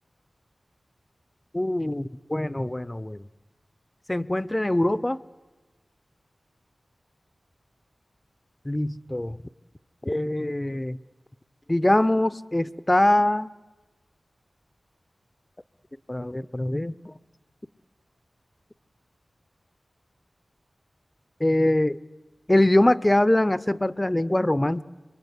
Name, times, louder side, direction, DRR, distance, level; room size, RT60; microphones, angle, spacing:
voice 1, 1.5-3.3 4.1-5.2 8.6-9.4 10.0-11.0 11.7-13.5 16.1-17.1 21.4-22.0 22.5-24.8, left 1 dB, 20° left, 17 dB, 0.8 m, -23 dB
27.0 x 23.0 x 8.2 m, 1.2 s
cardioid pair, 45°, 0 cm